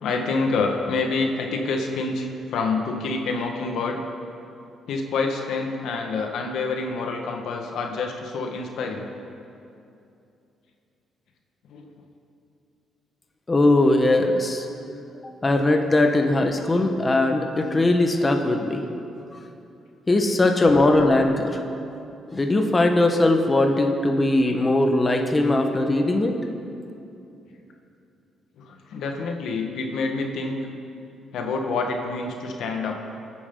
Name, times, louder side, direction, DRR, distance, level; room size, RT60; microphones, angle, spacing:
voice 1, 0.0-4.0 4.9-9.1 11.7-11.9 18.8-19.0 20.3-20.4 28.6-30.6 31.3-33.0, left 3 dB, 75° left, 2 dB, 1.6 m, -27 dB
voice 2, 13.5-14.7 15.4-18.8 20.1-21.6 22.3-26.3, left 2 dB, 25° left, 3 dB, 1.3 m, -20 dB
24.0 x 9.6 x 3.9 m, 2.7 s
cardioid pair, 90°, 0 cm